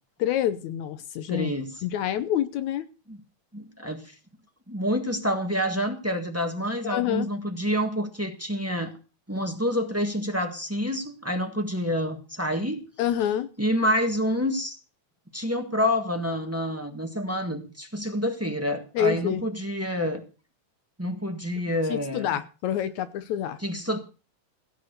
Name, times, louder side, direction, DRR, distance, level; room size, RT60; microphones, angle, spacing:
voice 1, 0.2-1.5 1.8-2.9 6.8-7.3 13.0-13.5 18.9-19.4 21.9-23.6, left 10 dB, 80° left, 12 dB, 2.2 m, -27 dB
voice 2, 1.3-1.7 3.1-3.2 3.5-4.1 4.7-8.9 9.3-12.8 13.6-14.7 15.3-20.2 21.0-22.3 23.6-24.0, equal, 10° right, 5 dB, 0.6 m, -28 dB
16.5 x 6.7 x 6.7 m, 0.34 s
omnidirectional pair, 3.3 m